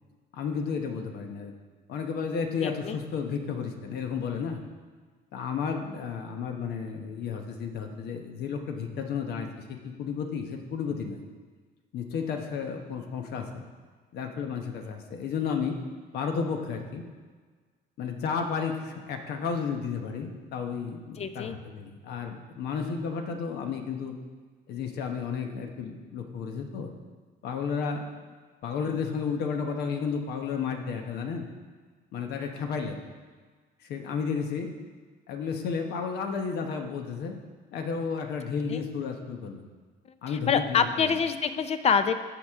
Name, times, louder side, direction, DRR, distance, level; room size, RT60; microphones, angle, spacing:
voice 1, 0.3-1.5 1.9-4.6 5.3-11.2 11.9-13.6 14.1-15.8 16.1-17.0 18.0-24.2 24.7-26.9 27.4-28.0 28.6-31.4 32.1-33.0 33.9-34.7 35.3-37.3 37.7-39.6 40.2-41.1, left 6 dB, 70° left, 4 dB, 1.2 m, -32 dB
voice 2, 2.6-3.0 21.2-21.6 38.7-38.8 40.5-42.1, left 6 dB, 40° left, 10 dB, 0.6 m, -25 dB
14.5 x 4.9 x 3.7 m, 1.5 s
cardioid pair, 110°, 17 cm